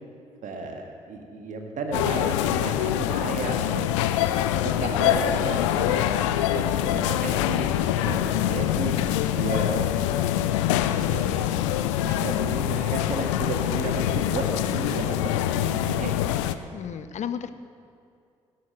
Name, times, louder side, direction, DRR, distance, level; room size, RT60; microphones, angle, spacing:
voice 1, 0.4-4.1 4.6-8.9 9.3-11.5 12.0-16.4, right 4 dB, 55° right, 3 dB, 1.8 m, -33 dB
sound 1, 1.9-16.5, left 12 dB, 75° left, 0.5 m, -25 dB
voice 2, 16.7-17.5, left 8 dB, 50° left, 12 dB, 0.7 m, -33 dB
16.0 x 8.3 x 6.5 m, 2.4 s
figure-of-eight pair, 45°, 16 cm